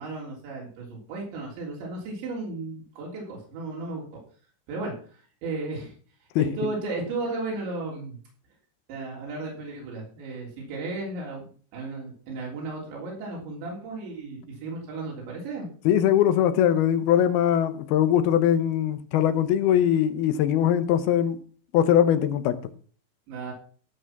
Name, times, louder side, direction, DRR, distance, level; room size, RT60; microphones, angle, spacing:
voice 1, 0.0-4.0 4.7-5.9 6.4-8.2 8.9-11.4 11.7-15.7 23.3-23.5, right 3 dB, 90° right, 5.7 m, -34 dB
voice 2, 15.9-21.4 21.7-22.6, left 10 dB, 75° left, 2.6 m, -21 dB
16.0 x 6.1 x 5.8 m
omnidirectional pair, 5.0 m